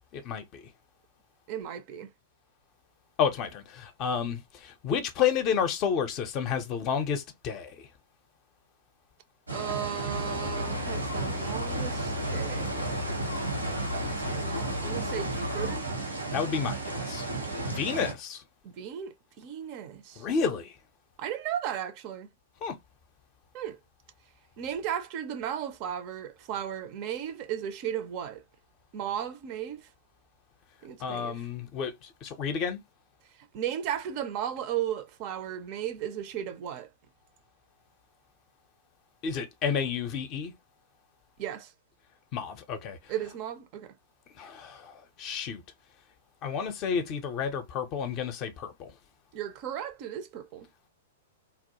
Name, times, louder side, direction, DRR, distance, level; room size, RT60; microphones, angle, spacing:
voice 1, 0.1-0.6 3.2-7.7 16.3-17.2 17.7-18.4 20.2-20.7 22.6-22.7 31.0-31.9 32.2-32.8 39.2-40.5 42.3-43.0 44.4-44.9 45.2-45.6 46.4-48.9, left 7 dB, 35° left, 0.5 m, -30 dB
voice 2, 1.5-2.1 9.5-13.2 14.0-15.9 18.6-20.3 21.2-22.3 23.5-23.8 24.6-28.4 28.9-29.9 30.8-31.5 33.4-36.9 41.4-41.7 43.1-43.9 49.3-50.7, right 10 dB, 40° right, 0.4 m, -35 dB
sound 1, 9.5-18.1, right 3 dB, 85° right, 0.8 m, -34 dB
sound 2, 10.1-15.8, left 3 dB, 90° left, 0.6 m, -35 dB
2.2 x 2.0 x 2.8 m
figure-of-eight pair, 105°, 0 cm